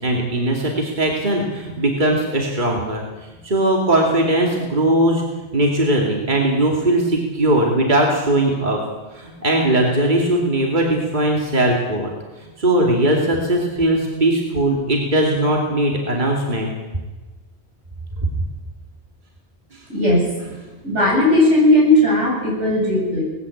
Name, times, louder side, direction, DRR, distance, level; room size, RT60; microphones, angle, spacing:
voice 1, 0.0-3.0 3.4-5.2 5.5-8.8 9.1-12.1 12.6-16.7, right 1 dB, 40° right, 0 dB, 2.8 m, -19 dB
voice 2, 19.9-20.3 20.8-23.2, left 1 dB, 85° right, -3 dB, 8.2 m, -16 dB
19.5 x 15.5 x 8.5 m, 1.2 s
omnidirectional pair, 1.2 m